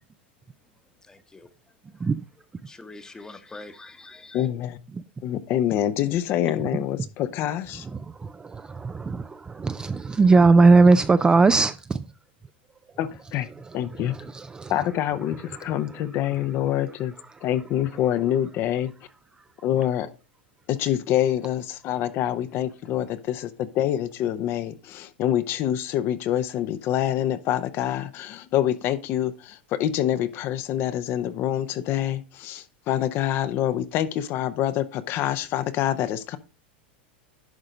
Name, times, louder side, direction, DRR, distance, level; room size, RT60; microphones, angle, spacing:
voice 1, 1.1-1.5 2.0-2.1 2.7-4.5, left 2 dB, 10° left, 1.0 m, -44 dB
voice 2, 4.3-4.8 5.2-7.9 13.0-13.5 13.7-14.1 14.7-17.1 17.4-18.9 19.6-20.1 20.7-36.4, left 11 dB, 45° left, 0.7 m, -26 dB
voice 3, 8.2-12.0 14.3-14.7, right 3 dB, 15° right, 0.4 m, -19 dB
11.0 x 3.8 x 5.0 m
hypercardioid pair, 115°, 6 cm